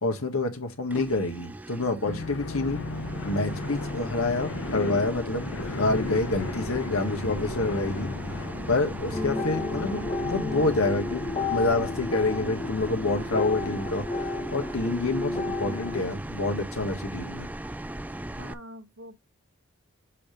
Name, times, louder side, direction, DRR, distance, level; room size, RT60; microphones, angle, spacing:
voice 1, 0.0-2.8 3.2-8.1 8.7-17.5, left 2 dB, 75° left, 1.7 m, -28 dB
sound 1, 0.9-18.5, right 1 dB, 5° right, 0.3 m, -38 dB
sound 2, 2.1-12.9, left 3 dB, 60° left, 0.8 m, -36 dB
sound 3, 9.1-16.0, left 3 dB, 25° left, 1.1 m, -32 dB
voice 2, 18.4-19.2, equal, 70° right, 1.3 m, -45 dB
7.6 x 3.0 x 5.1 m
head